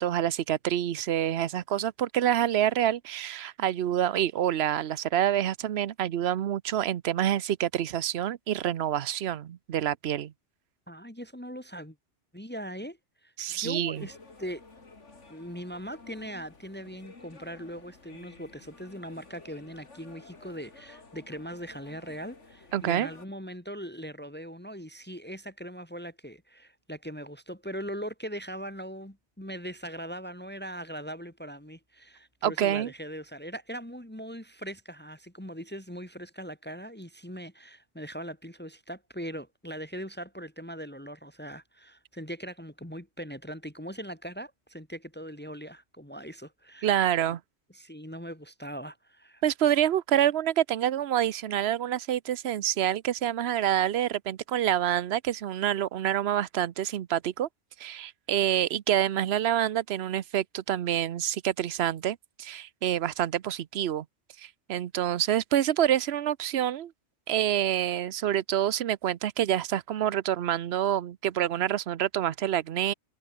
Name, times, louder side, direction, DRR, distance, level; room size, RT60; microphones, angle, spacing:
voice 1, 0.0-10.3 13.4-14.1 22.7-23.1 32.4-32.9 46.8-47.4 49.4-57.5 57.8-64.0 64.4-66.9 67.3-72.9, right 11 dB, 65° right, 1.0 m, -27 dB
voice 2, 10.9-12.0 12.3-14.6 15.3-47.0 47.7-49.4, equal, 10° left, 2.7 m, -40 dB
sound 1, 13.9-23.3, left 3 dB, 85° left, 3.4 m, -52 dB
omnidirectional pair, 1.2 m